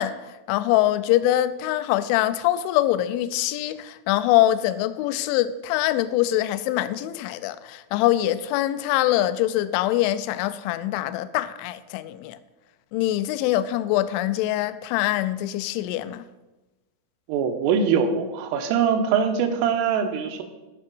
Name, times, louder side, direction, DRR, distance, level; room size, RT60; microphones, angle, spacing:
voice 1, 0.0-12.4 12.9-16.2, left 14 dB, 85° left, 2.8 m, -24 dB
voice 2, 17.3-20.4, right 6 dB, 85° right, 3.5 m, -22 dB
14.5 x 5.9 x 6.1 m
omnidirectional pair, 5.7 m